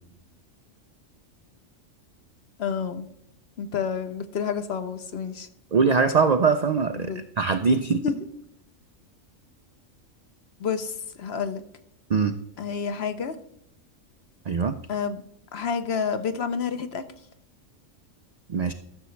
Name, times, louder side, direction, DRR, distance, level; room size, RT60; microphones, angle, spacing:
voice 1, 2.6-3.1 3.6-5.5 6.9-7.2 8.0-8.2 10.6-11.6 12.6-13.4 14.9-15.2 15.5-17.0, left 6 dB, 55° left, 10 dB, 0.9 m, -29 dB
voice 2, 5.7-8.0 12.1-12.3 14.5-14.8 18.5-18.7, right 5 dB, 70° right, 8 dB, 0.4 m, -22 dB
14.0 x 6.9 x 3.2 m, 0.77 s
omnidirectional pair, 1.4 m